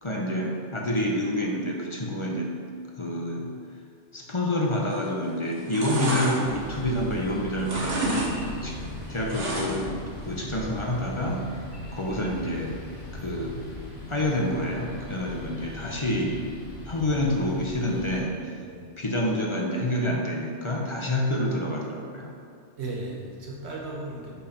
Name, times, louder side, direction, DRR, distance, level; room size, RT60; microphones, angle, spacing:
voice 1, 0.0-2.5 3.0-3.5 4.1-8.8 9.1-11.5 11.9-12.8 13.1-13.6 14.1-16.4 16.8-18.6 19.0-22.4, left 1 dB, 30° left, -1 dB, 0.7 m, -28 dB
sound 1, 4.9-5.2 5.5-7.3 7.6-8.3 8.6-10.0 10.3-10.4, right 2 dB, 90° right, 1.3 m, -30 dB
sound 2, 6.4-18.2, left 1 dB, 60° left, 1.8 m, -39 dB
voice 2, 18.6-19.0 22.8-24.4, right 2 dB, 70° right, -2 dB, 1.4 m, -36 dB
5.5 x 4.4 x 5.7 m, 2.2 s
omnidirectional pair, 1.2 m